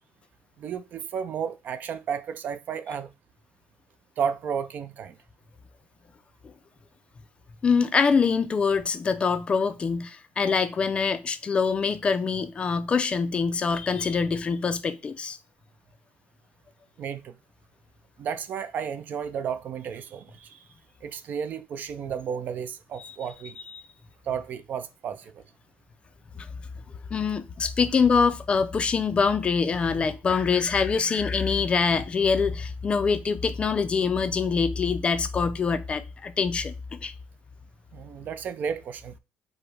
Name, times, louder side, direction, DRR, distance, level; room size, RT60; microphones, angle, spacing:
voice 1, 0.6-3.1 4.2-5.2 17.0-17.3 18.2-20.6 21.0-23.6 24.3-25.4 37.9-39.2, right 7 dB, 45° right, 0.4 m, -32 dB
voice 2, 7.6-15.4 23.0-23.1 23.6-23.7 26.4-26.5 27.1-37.1, left 5 dB, 25° left, 0.4 m, -24 dB
4.9 x 2.1 x 4.6 m
cardioid pair, 140°, 4 cm